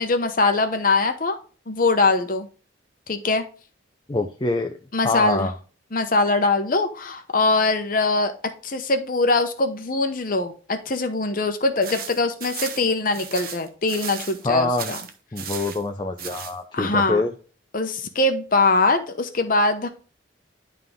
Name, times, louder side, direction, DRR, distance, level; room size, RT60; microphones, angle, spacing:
voice 1, 0.0-1.4 1.7-2.5 3.1-3.4 4.9-5.5 5.9-8.3 8.6-15.0 16.7-17.2 17.7-19.9, left 3 dB, 45° left, 7 dB, 0.8 m, -22 dB
voice 2, 4.1-4.7 5.0-5.5 14.4-14.9 15.3-17.3, left 2 dB, 25° left, 5 dB, 0.5 m, -25 dB
sound 1, 11.8-14.5 14.8-15.8 16.2-16.5, right 7 dB, 50° right, 0.9 m, -35 dB
11.0 x 3.7 x 3.5 m, 0.37 s
head